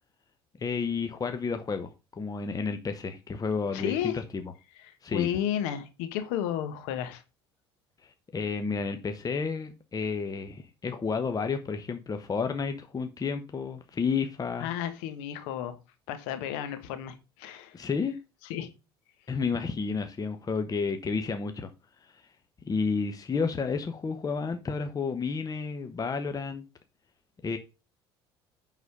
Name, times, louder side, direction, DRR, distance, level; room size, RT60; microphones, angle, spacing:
voice 1, 0.6-4.4 5.0-5.3 8.0-14.7 17.7-18.2 19.3-21.7 22.0-22.2 22.6-26.6 27.4-27.6, left 5 dB, 25° left, 1.1 m, -31 dB
voice 2, 3.7-4.1 4.8-7.2 14.6-15.8 16.1-17.8 18.4-18.7, left 10 dB, 70° left, 1.4 m, -32 dB
9.5 x 4.1 x 4.9 m
hypercardioid pair, 65°, 14 cm